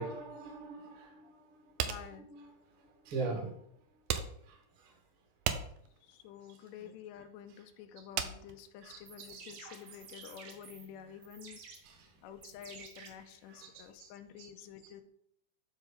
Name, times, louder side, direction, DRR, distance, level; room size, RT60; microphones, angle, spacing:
voice 1, 0.0-1.3 2.3-2.5 3.0-3.5 4.5-4.6 6.8-6.9 8.8-9.0 10.2-10.3 11.8-12.1 13.5-13.7 14.0-14.1 14.4-14.5, right 3 dB, 40° right, -1 dB, 2.1 m, -40 dB
voice 2, 1.8-2.3 6.0-11.6 12.2-15.0, left 9 dB, 85° left, 8 dB, 2.8 m, -50 dB
sound 1, 1.8-9.4, right 9 dB, 85° right, 2.1 m, -39 dB
sound 2, 8.9-13.9, right 5 dB, 60° right, 2.3 m, -53 dB
12.0 x 4.1 x 5.2 m, 0.69 s
omnidirectional pair, 4.9 m